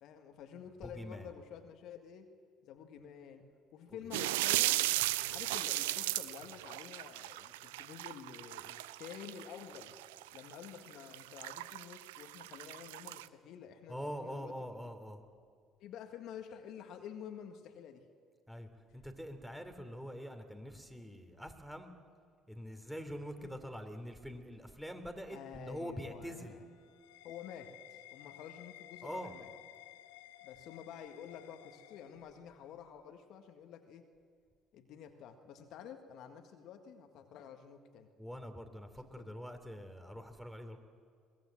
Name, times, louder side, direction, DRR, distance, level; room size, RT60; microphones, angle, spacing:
voice 1, 0.0-2.3 2.6-3.5 3.7-4.9 5.3-10.0 10.3-14.6 15.8-18.1 23.4-23.5 25.3-26.5 27.2-29.5 30.4-34.1 34.7-38.1 39.2-39.3, left 8 dB, 60° left, 6 dB, 1.8 m, -50 dB
voice 2, 0.8-1.3 3.9-4.1 13.9-15.2 18.5-21.9 22.5-26.6 29.0-29.3 38.2-40.8, equal, 5° right, 7 dB, 3.1 m, -44 dB
sound 1, 4.1-13.3, right 17 dB, 80° right, 0.5 m, -36 dB
sound 2, 26.4-32.7, left 14 dB, 75° left, 0.9 m, -55 dB
22.5 x 18.5 x 7.6 m, 2.2 s
hypercardioid pair, 55°, 0 cm